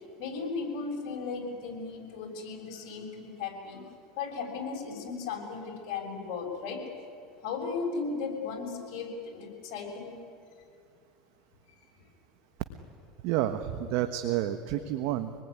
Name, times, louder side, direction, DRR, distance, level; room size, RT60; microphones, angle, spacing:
voice 1, 0.2-3.8 4.2-6.8 7.4-10.1, left 4 dB, 65° left, 2 dB, 6.7 m, -36 dB
voice 2, 13.2-15.3, right 12 dB, 65° right, 8 dB, 1.3 m, -30 dB
26.5 x 20.0 x 9.8 m, 2.3 s
supercardioid pair, 100°, 3 cm